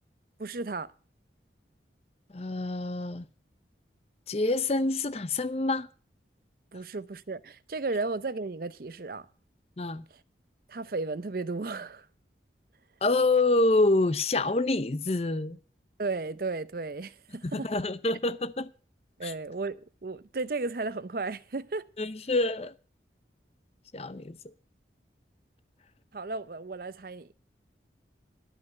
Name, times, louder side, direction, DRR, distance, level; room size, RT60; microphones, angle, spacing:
voice 1, 0.4-0.9 6.7-9.3 10.7-12.1 16.0-17.7 19.2-21.9 26.1-27.3, right 3 dB, 55° right, 0.6 m, -34 dB
voice 2, 2.3-3.3 4.3-5.9 9.8-10.0 13.0-15.6 17.5-18.7 19.2-19.3 22.0-22.7 23.9-24.4, left 2 dB, 35° left, 0.6 m, -27 dB
12.5 x 5.5 x 8.0 m
head